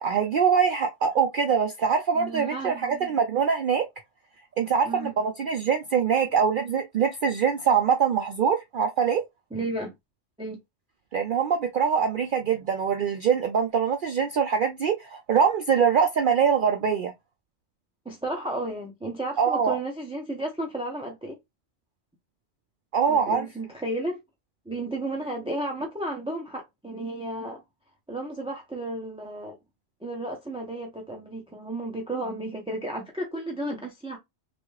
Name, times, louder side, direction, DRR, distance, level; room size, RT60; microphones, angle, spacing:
voice 1, 0.0-3.8 4.6-9.2 11.1-17.1 19.4-19.8 22.9-23.5, right 6 dB, 60° right, 0.6 m, -23 dB
voice 2, 2.1-3.1 4.8-5.1 9.5-9.9 10.4-10.6 18.0-21.4 23.1-24.2 24.7-27.6 28.1-29.5 30.0-34.2, right 1 dB, 5° right, 0.5 m, -33 dB
3.4 x 2.4 x 3.1 m
omnidirectional pair, 1.2 m